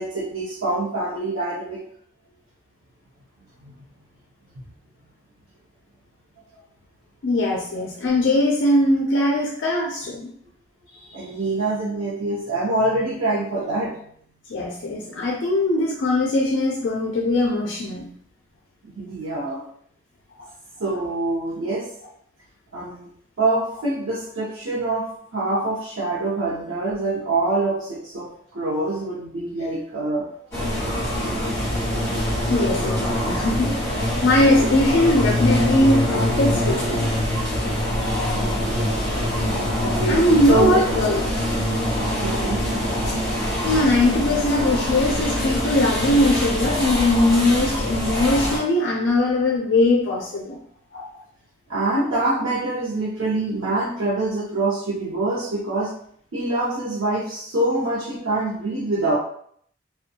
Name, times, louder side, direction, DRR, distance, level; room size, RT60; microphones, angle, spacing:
voice 1, 0.0-1.8 3.6-3.7 10.9-13.9 18.8-19.6 20.8-21.9 22.7-23.1 23.4-30.5 31.3-32.2 34.6-34.7 38.3-39.0 39.8-40.2 40.5-40.8 42.2-42.7 51.7-55.9 56.3-59.2, right 2 dB, 90° right, -8 dB, 0.7 m, -25 dB
voice 2, 7.2-10.3 14.5-18.1 32.5-33.7 34.2-37.1 40.1-41.2 43.6-50.6 50.9-51.0, left 1 dB, 60° left, -1 dB, 0.4 m, -20 dB
sound 1, 30.5-48.6, left 1 dB, 15° left, 1.3 m, -24 dB
2.5 x 2.2 x 2.7 m, 0.64 s
head